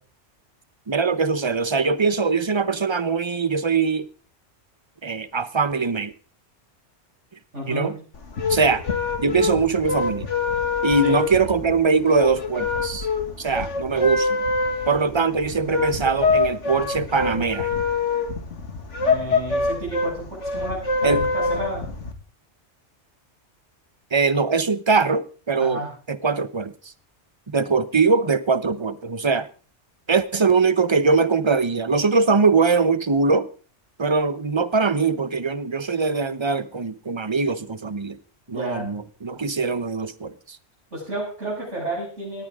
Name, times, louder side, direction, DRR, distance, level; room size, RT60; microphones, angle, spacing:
voice 1, 0.9-4.1 5.0-6.1 7.7-8.0 8.5-8.8 9.2-10.3 10.8-13.1 13.4-14.4 14.9-17.7 21.0-21.2 24.1-25.8 26.1-26.7 27.5-29.5 30.1-33.5 34.0-38.2 38.5-40.6, right 4 dB, 25° right, 0.9 m, -22 dB
voice 2, 7.5-7.9 11.0-11.2 15.0-15.1 19.0-21.8 25.6-25.9 38.5-38.9 40.9-42.4, right 1 dB, 80° right, 7.9 m, -31 dB
sound 1, 8.1-22.1, left 4 dB, 85° left, 2.4 m, -25 dB
19.0 x 14.5 x 3.7 m
omnidirectional pair, 1.2 m